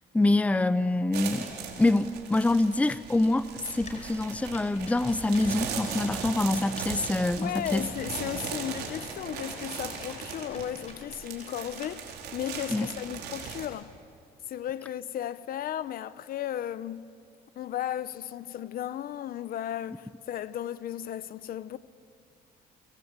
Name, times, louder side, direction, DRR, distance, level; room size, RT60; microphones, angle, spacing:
voice 1, 0.1-1.5 1.8-7.9 12.7-12.9, left 2 dB, 10° left, 0.7 m, -25 dB
sound 1, 1.1-13.7, right 6 dB, 75° right, 4.6 m, -38 dB
sound 2, 3.6-11.5, left 4 dB, 45° left, 4.7 m, -51 dB
voice 2, 7.4-13.9 14.5-17.1 17.6-21.8, left 11 dB, 60° left, 0.9 m, -35 dB
30.0 x 23.5 x 8.2 m
cardioid pair, 110°, 17 cm